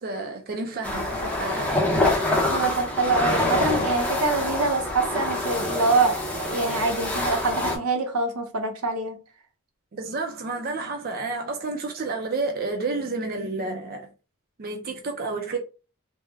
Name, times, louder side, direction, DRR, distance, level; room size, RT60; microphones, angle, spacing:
voice 1, 0.0-1.9 9.9-14.1 14.6-15.6, right 3 dB, 40° right, 0.4 m, -30 dB
sound 1, 0.8-7.8, left 2 dB, 5° left, 0.6 m, -26 dB
voice 2, 2.5-9.2, right 3 dB, 85° right, 0.8 m, -25 dB
3.4 x 2.1 x 3.3 m
head